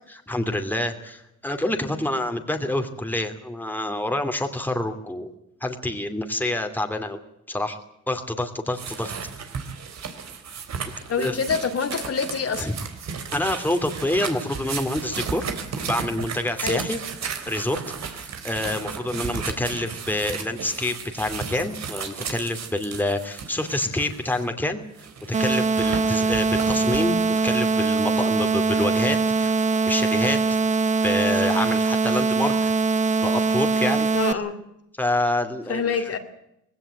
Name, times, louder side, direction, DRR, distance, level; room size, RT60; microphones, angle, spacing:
voice 1, 0.3-5.3 5.6-7.2 7.5-7.8 8.1-9.1 11.2-11.4 12.6-12.8 13.3-15.5 15.9-17.0 17.5-17.8 18.1-24.8 25.3-29.5 29.8-30.4 31.0-32.5 33.2-34.1 35.0-36.1, left 1 dB, 5° left, 5 dB, 2.7 m, -27 dB
sound 1, 8.7-24.4 25.0-27.2, right 6 dB, 60° right, 3.6 m, -34 dB
voice 2, 11.1-12.7 16.6-16.8 34.1-34.5 35.7-36.2, left 5 dB, 50° left, 7 dB, 2.9 m, -26 dB
sound 2, 25.3-34.3, right 4 dB, 25° right, 0.8 m, -22 dB
19.5 x 17.0 x 9.1 m, 0.81 s
cardioid pair, 90°, 30 cm